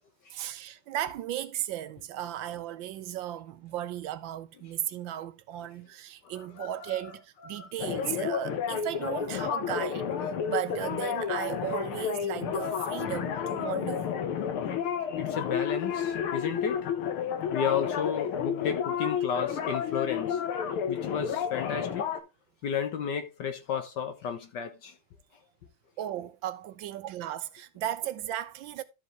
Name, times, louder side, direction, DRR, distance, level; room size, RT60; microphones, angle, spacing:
voice 1, 0.3-14.1 26.0-28.8, right 12 dB, 70° right, 1.2 m, -35 dB
voice 2, 6.2-7.0 7.4-7.7 14.8-16.9 17.5-20.4 20.9-22.1 22.6-25.0, left 7 dB, 60° left, 1.3 m, -33 dB
sound 1, 7.8-22.2, left 8 dB, 80° left, 1.9 m, -31 dB
12.5 x 4.8 x 3.1 m
omnidirectional pair, 2.3 m